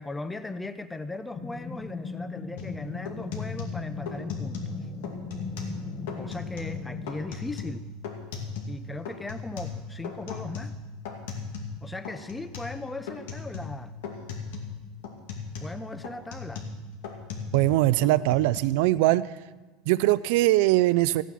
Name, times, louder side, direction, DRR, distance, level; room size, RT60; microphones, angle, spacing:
voice 1, 0.0-4.7 6.2-7.8 8.7-10.7 11.8-13.9 15.6-16.6, left 2 dB, 5° left, 11 dB, 0.5 m, -38 dB
sound 1, 1.3-7.1, left 4 dB, 25° left, 0.9 m, -38 dB
sound 2, 2.6-2.8 3.1-4.8 5.0-5.8 6.1-6.8 7.1-8.8 9.1-11.8 12.0-12.8 13.1-13.8 14.0-14.7 15.0-17.8 18.0-18.6, left 5 dB, 90° left, 2.3 m, -37 dB
voice 2, 17.5-19.3 19.9-21.2, right 17 dB, 65° right, 16 dB, 0.3 m, -21 dB
15.0 x 9.1 x 6.1 m, 1.2 s
supercardioid pair, 165°, 0 cm